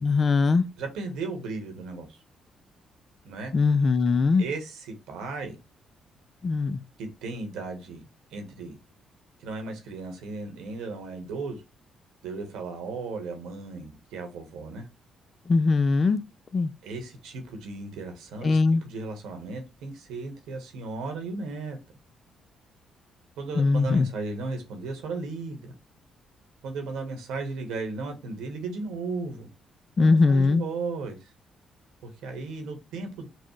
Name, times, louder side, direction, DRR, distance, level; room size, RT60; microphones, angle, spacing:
voice 1, 0.0-0.6 3.5-4.5 6.4-6.8 15.5-16.2 16.5-16.7 18.4-18.8 23.6-24.1 30.0-30.6, left 4 dB, 40° left, 0.3 m, -21 dB
voice 2, 0.8-2.2 3.2-3.5 4.3-5.6 7.0-8.8 9.4-11.6 12.2-14.9 16.8-21.8 23.4-25.7 26.6-29.5 30.0-31.3 32.0-33.3, right 3 dB, 90° right, 1.2 m, -35 dB
5.9 x 2.1 x 3.1 m
cardioid pair, 90°, 0 cm